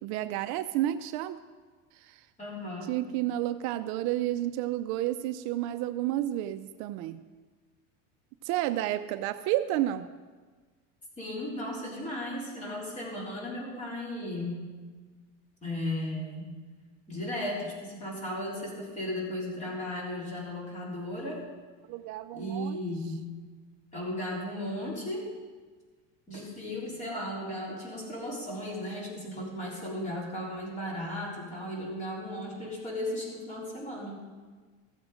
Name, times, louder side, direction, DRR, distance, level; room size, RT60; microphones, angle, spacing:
voice 1, 0.0-1.4 2.0-2.2 2.9-7.2 8.4-10.1 21.9-22.8, right 14 dB, 60° right, 11 dB, 0.5 m, -31 dB
voice 2, 2.4-3.0 11.2-14.7 15.6-16.5 17.1-21.4 22.3-23.3 23.9-25.3 26.3-34.2, left 1 dB, 20° left, -4 dB, 3.8 m, -35 dB
15.0 x 7.6 x 5.0 m, 1.4 s
cardioid pair, 150°, 32 cm